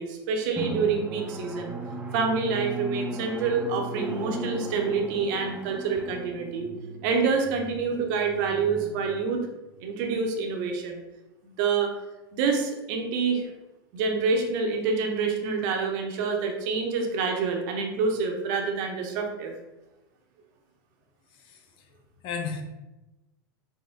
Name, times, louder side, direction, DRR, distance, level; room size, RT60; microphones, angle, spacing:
voice 1, 0.0-1.7 2.1-6.7 7.0-9.5 9.8-11.0 11.4-11.9 12.3-13.5 13.9-19.5, right 5 dB, 55° right, 3 dB, 0.8 m, -27 dB
Drum, 0.6-9.8, right 2 dB, 10° right, 0.6 m, -37 dB
voice 2, 21.3-21.9 22.2-22.6, left 6 dB, 45° left, 2 dB, 0.7 m, -35 dB
4.5 x 2.1 x 3.4 m, 1.0 s
hypercardioid pair, 100°, 12 cm